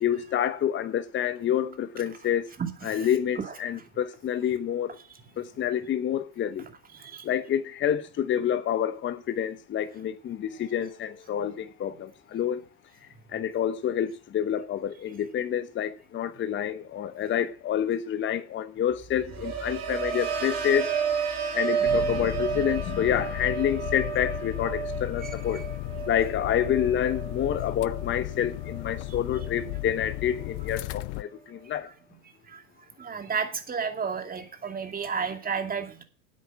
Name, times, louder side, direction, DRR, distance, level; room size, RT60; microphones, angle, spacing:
voice 1, 0.0-2.5 2.8-5.0 5.4-6.6 7.2-12.6 13.3-20.9 21.5-25.6 26.1-31.9, left 9 dB, 25° left, 1.0 m, -28 dB
voice 2, 2.6-3.1 6.9-7.3 25.2-25.6 32.5-32.6 33.0-36.0, right 6 dB, 20° right, 2.5 m, -32 dB
sound 1, 18.9-29.0 29.4-29.8, right 7 dB, 35° right, 3.8 m, -32 dB
sound 2, 21.8-31.2, left 22 dB, 50° left, 0.5 m, -35 dB
10.0 x 8.4 x 7.2 m
supercardioid pair, 115°, 44 cm